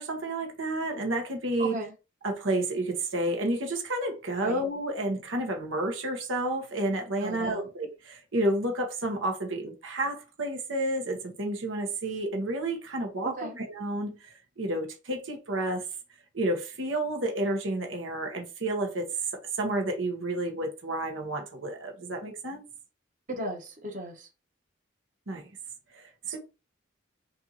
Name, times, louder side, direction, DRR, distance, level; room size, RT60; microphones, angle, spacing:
voice 1, 0.0-1.8 2.2-15.9 16.3-19.1 19.6-22.6 25.3-25.5 25.9-26.4, right 1 dB, 80° right, 1.2 m, -30 dB
voice 2, 1.6-1.9 4.4-4.6 7.2-7.7 13.2-13.6 23.3-24.3 26.2-26.4, right 1 dB, 40° right, 1.2 m, -36 dB
6.7 x 2.6 x 2.9 m
head